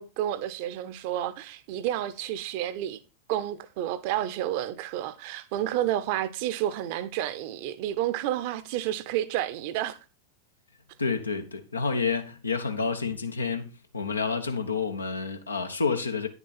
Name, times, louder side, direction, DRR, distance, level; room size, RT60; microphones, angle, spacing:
voice 1, 0.0-3.0 3.3-10.0, right 12 dB, 45° right, 0.9 m, -30 dB
voice 2, 11.0-16.3, left 4 dB, 75° left, 1.3 m, -29 dB
10.0 x 7.0 x 4.3 m
figure-of-eight pair, 90°, 0 cm